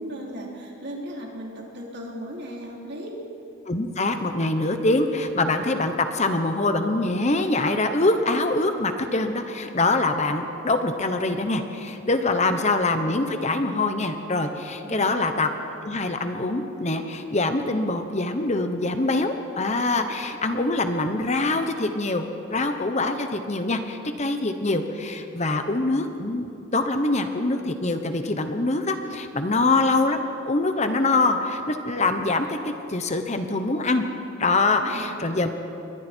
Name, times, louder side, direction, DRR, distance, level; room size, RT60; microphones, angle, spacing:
voice 1, 0.0-3.2 12.3-12.6 14.8-15.3 34.8-35.4, equal, 55° right, -2 dB, 3.9 m, -37 dB
voice 2, 3.7-15.5 15.8-34.0 34.4-35.5, left 2 dB, 35° left, 7 dB, 1.1 m, -24 dB
28.5 x 23.0 x 4.6 m, 2.8 s
head